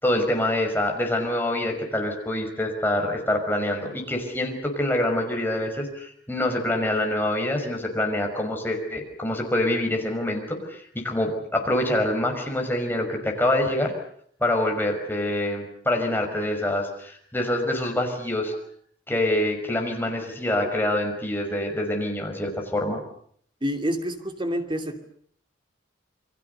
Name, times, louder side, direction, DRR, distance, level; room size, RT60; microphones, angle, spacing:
voice 1, 0.0-13.9 14.4-18.5 19.1-23.0, left 1 dB, 10° left, 2 dB, 5.6 m, -25 dB
voice 2, 23.6-25.0, equal, 25° right, 6 dB, 2.7 m, -28 dB
29.0 x 23.0 x 6.8 m, 0.63 s
head